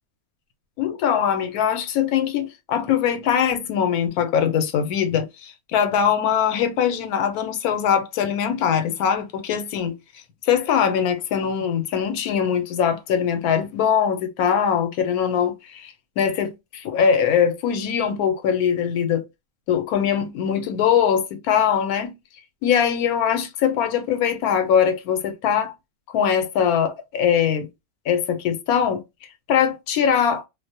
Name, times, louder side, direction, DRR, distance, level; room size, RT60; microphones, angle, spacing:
voice 1, 0.8-9.9 10.4-19.2 19.7-22.1 22.6-25.7 26.1-27.7 28.1-29.0 29.5-30.4, left 8 dB, 85° left, 1.1 m, -22 dB
2.5 x 2.0 x 2.6 m
omnidirectional pair, 1.5 m